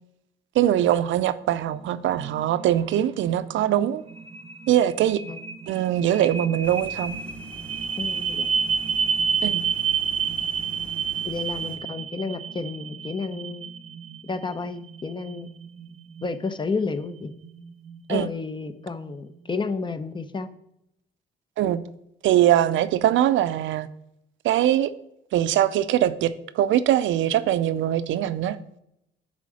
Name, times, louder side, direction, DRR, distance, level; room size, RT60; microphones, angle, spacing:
voice 1, 0.5-4.0 4.7-5.2 5.7-7.2 9.4-9.6 18.1-18.3 21.6-21.8 22.2-23.9 24.4-24.9 25.3-28.6, right 11 dB, 75° right, 0.5 m, -22 dB
sound 1, 1.7-19.7, right 6 dB, 30° right, 0.6 m, -31 dB
sound 2, 6.6-11.8, left 2 dB, 5° left, 1.0 m, -46 dB
voice 2, 8.0-8.5 11.2-13.7 14.2-15.5 16.2-17.3 18.1-20.5, left 4 dB, 25° left, 0.7 m, -31 dB
8.4 x 3.7 x 6.2 m
cardioid pair, 90°, 20 cm